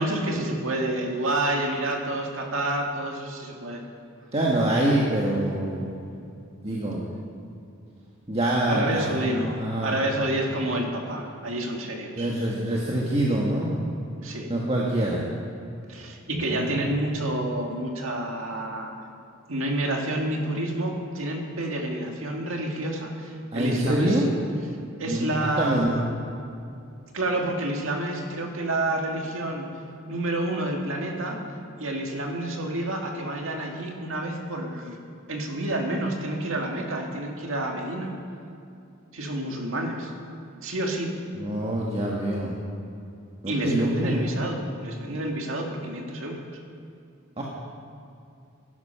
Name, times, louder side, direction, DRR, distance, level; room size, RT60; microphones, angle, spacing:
voice 1, 0.0-3.8 8.7-12.3 14.2-14.5 15.9-18.9 19.5-24.2 25.0-26.0 27.1-29.7 30.1-31.4 31.8-35.0 35.3-38.1 39.1-40.1 40.6-41.1 43.5-46.5, right 1 dB, 70° right, 1 dB, 2.0 m, -29 dB
voice 2, 4.3-6.0 6.6-7.0 8.3-9.1 9.6-10.0 12.1-13.8 14.5-15.2 16.3-16.8 23.5-24.3 25.1-25.9 41.3-42.6 43.4-44.2 47.4-47.5, right 1 dB, 30° right, -4 dB, 1.5 m, -25 dB
15.5 x 11.5 x 5.7 m, 2.6 s
head